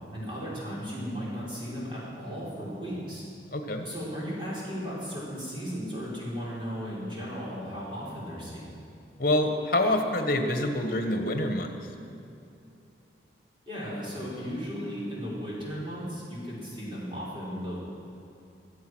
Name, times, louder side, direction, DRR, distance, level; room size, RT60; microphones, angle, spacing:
voice 1, 0.1-3.3 3.8-8.7 13.7-17.8, equal, 25° right, -7 dB, 4.5 m, -36 dB
voice 2, 3.5-3.9 9.2-11.7, left 1 dB, 50° left, 5 dB, 1.5 m, -26 dB
24.0 x 8.2 x 6.3 m, 2.6 s
head